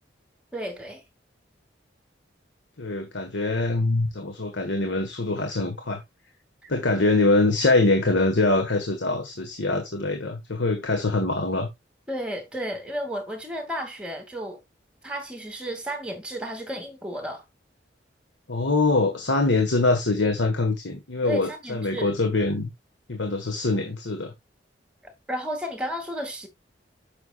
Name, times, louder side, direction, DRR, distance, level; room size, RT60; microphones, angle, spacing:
voice 1, 0.5-1.0 6.6-6.7 12.1-14.6 15.0-17.4 21.2-22.1 25.0-26.5, equal, 5° right, 2.3 m, -33 dB
voice 2, 2.8-6.0 6.7-11.7 18.5-22.7 23.1-24.3, left 2 dB, 80° left, 1.5 m, -24 dB
9.8 x 6.9 x 2.4 m
head